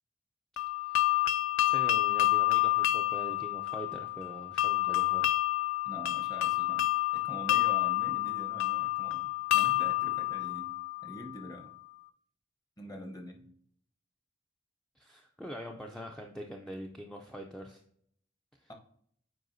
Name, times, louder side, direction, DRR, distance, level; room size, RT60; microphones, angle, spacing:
sound 1, 0.6-11.4, left 16 dB, 70° left, 0.3 m, -29 dB
voice 1, 0.8-1.3 1.6-5.3 15.0-17.8 18.6-18.7, equal, 5° left, 1 dB, 0.4 m, -44 dB
voice 2, 5.8-6.9 7.1-10.7 11.0-11.7 12.8-13.5, equal, 20° left, 3 dB, 0.7 m, -45 dB
7.6 x 4.8 x 2.6 m, 0.65 s
head